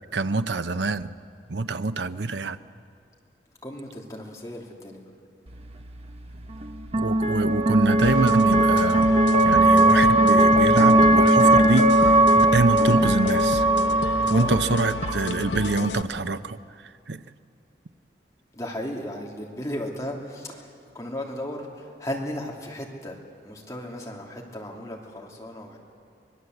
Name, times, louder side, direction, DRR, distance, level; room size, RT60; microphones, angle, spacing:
voice 1, 0.1-1.1 1.5-2.6 7.0-9.1 9.4-11.9 12.4-13.7 14.3-16.6 17.1-17.2, right 3 dB, 80° right, 11 dB, 0.8 m, -25 dB
voice 2, 3.6-5.0 14.3-14.6 18.5-23.2 23.4-25.8, left 1 dB, 20° left, -1 dB, 2.9 m, -35 dB
sound 1, 5.5-15.8, right 1 dB, 35° right, 1.1 m, -19 dB
sound 2, 8.0-16.0, left 3 dB, 90° left, 0.9 m, -32 dB
25.0 x 20.0 x 7.9 m, 2.3 s
head